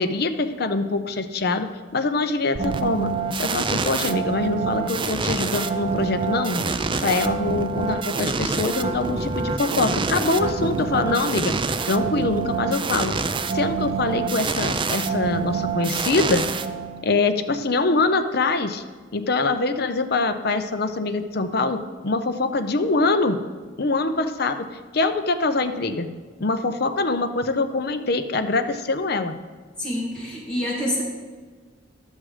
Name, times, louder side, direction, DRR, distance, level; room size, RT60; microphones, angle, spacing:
voice 1, 0.0-1.7 1.9-6.7 7.0-11.6 11.9-13.2 13.5-16.5 17.0-18.8 19.1-23.4 23.8-24.7 24.9-26.1 26.4-29.4, left 3 dB, 55° left, 8 dB, 0.7 m, -24 dB
sound 1, 2.6-17.2, right 4 dB, 25° right, 0.4 m, -26 dB
voice 2, 29.8-31.0, left 1 dB, 5° left, -7 dB, 1.9 m, -27 dB
11.5 x 7.5 x 4.9 m, 1.5 s
head